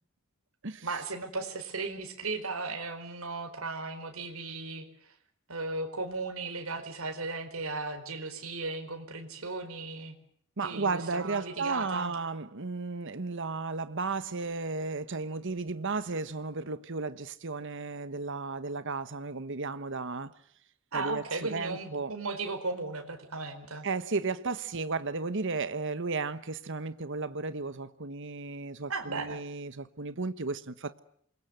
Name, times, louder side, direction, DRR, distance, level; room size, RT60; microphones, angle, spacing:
voice 1, 0.8-5.1 5.5-10.1 10.6-12.2 20.9-23.9 28.9-29.4, right 3 dB, 90° right, 4.5 m, -36 dB
voice 2, 10.6-20.3 20.9-22.1 23.8-31.0, right 3 dB, 60° right, 1.2 m, -34 dB
28.0 x 22.5 x 8.0 m
head